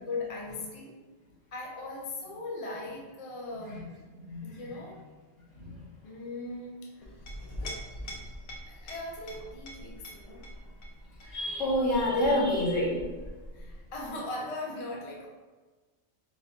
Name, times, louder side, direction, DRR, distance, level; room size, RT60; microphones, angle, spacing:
voice 1, 0.1-1.0 1.5-4.1 4.4-5.0 6.0-7.2 8.7-10.5 13.5-15.3, left 2 dB, 40° left, -2 dB, 0.5 m, -39 dB
Chink clink, 7.0-14.1, equal, 90° left, 1.3 m, -44 dB
voice 2, 11.2-13.0, left 1 dB, 65° left, -9 dB, 1.9 m, -27 dB
4.2 x 2.6 x 3.9 m, 1.3 s
omnidirectional pair, 1.4 m